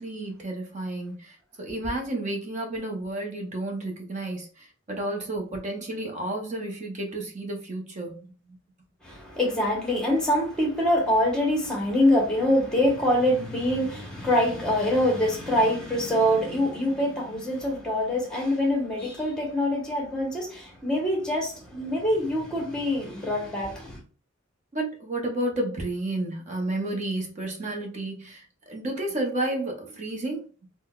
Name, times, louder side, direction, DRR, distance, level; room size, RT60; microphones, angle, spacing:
voice 1, 0.0-8.3 24.7-30.5, right 1 dB, 35° right, 0.7 m, -31 dB
voice 2, 9.0-24.0, left 1 dB, 5° left, 0.9 m, -24 dB
3.7 x 2.1 x 2.3 m
head